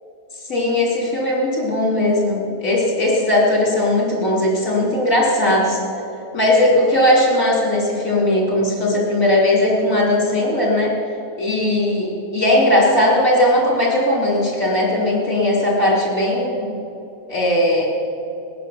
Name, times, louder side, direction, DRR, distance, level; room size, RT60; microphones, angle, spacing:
voice 1, 0.5-5.8 6.3-10.9 11.4-16.7 17.3-17.9, left 1 dB, 60° left, -3 dB, 3.8 m, -18 dB
19.5 x 9.6 x 6.9 m, 2.8 s
omnidirectional pair, 1.6 m